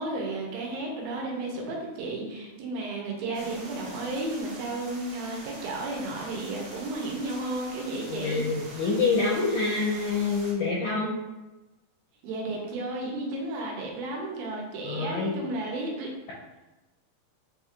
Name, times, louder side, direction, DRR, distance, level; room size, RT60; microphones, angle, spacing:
voice 1, 0.0-8.4 12.2-16.1, right 2 dB, 80° right, -1 dB, 2.5 m, -33 dB
sound 1, 3.3-10.5, right 1 dB, 55° right, 2.0 m, -45 dB
voice 2, 8.1-11.1 14.8-15.4, left 4 dB, 85° left, -6 dB, 1.8 m, -26 dB
6.3 x 2.9 x 2.4 m, 1.1 s
omnidirectional pair, 4.3 m